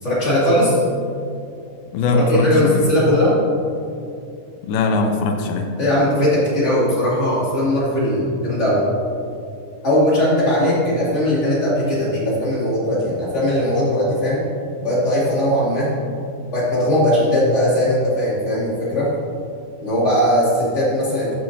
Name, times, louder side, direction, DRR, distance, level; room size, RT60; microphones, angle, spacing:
voice 1, 0.0-0.8 2.1-3.4 5.8-8.8 9.8-14.4 14.8-15.9 16.5-19.1 19.8-21.3, left 1 dB, 25° left, -8 dB, 1.6 m, -19 dB
voice 2, 1.9-2.9 4.6-5.7, left 3 dB, 80° left, 4 dB, 2.5 m, -20 dB
13.5 x 6.4 x 2.7 m, 2.5 s
omnidirectional pair, 4.5 m